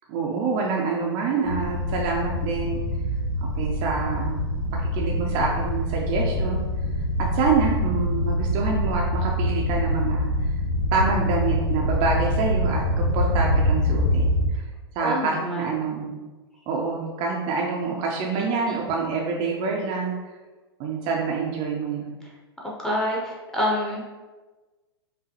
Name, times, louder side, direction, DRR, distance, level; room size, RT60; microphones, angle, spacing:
voice 1, 0.1-2.8 3.6-4.4 4.8-6.6 7.2-10.3 10.9-14.6 15.0-16.2 16.7-20.1 20.8-22.1, right 4 dB, 35° right, -1 dB, 0.5 m, -26 dB
sound 1, 1.5-14.4, left 1 dB, 85° left, 0.7 m, -25 dB
voice 2, 15.0-15.9 18.3-18.8 22.6-24.0, equal, 5° left, -5 dB, 0.8 m, -28 dB
4.9 x 2.2 x 2.9 m, 1.3 s
figure-of-eight pair, 100°, 13 cm